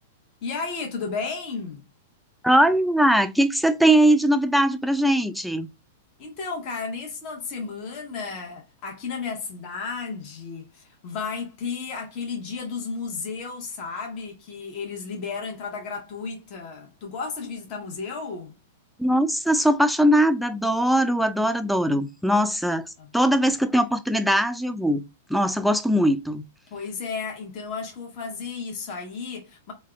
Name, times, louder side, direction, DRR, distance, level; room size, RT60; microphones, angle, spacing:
voice 1, 0.4-1.9 6.2-18.5 23.0-23.5 26.7-29.7, left 5 dB, 45° left, 0.9 m, -33 dB
voice 2, 2.4-5.7 19.0-25.0 25.3-26.4, right 1 dB, ahead, 0.3 m, -21 dB
3.3 x 2.1 x 2.2 m
hypercardioid pair, 105°, 0 cm